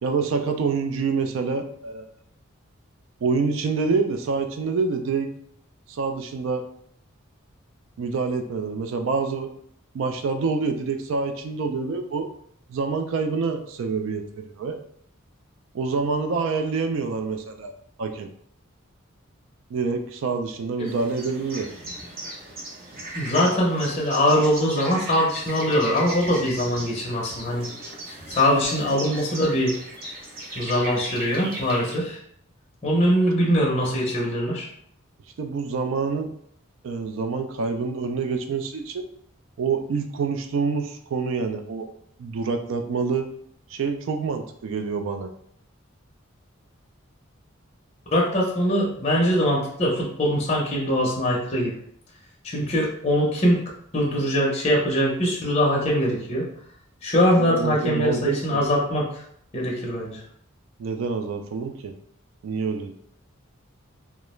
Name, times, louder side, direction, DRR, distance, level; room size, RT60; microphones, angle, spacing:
voice 1, 0.0-2.1 3.2-5.3 5.9-6.6 8.0-9.5 9.9-12.3 12.7-14.8 15.7-18.3 19.7-21.7 35.4-36.3 36.8-39.1 39.6-41.9 42.2-43.3 43.7-45.3 57.4-58.6 60.8-61.9 62.4-62.9, right 4 dB, 65° right, 6 dB, 0.3 m, -27 dB
Kwade Hoek songbirds and others, 20.8-32.0, right 1 dB, 45° right, 0.7 m, -37 dB
voice 2, 23.1-27.7 28.3-29.7 30.6-32.2 32.8-34.7 48.1-51.7 52.4-53.6 53.9-56.5 57.0-59.2 59.5-60.2, equal, 30° left, -3 dB, 0.5 m, -22 dB
2.3 x 2.0 x 3.0 m, 0.67 s
head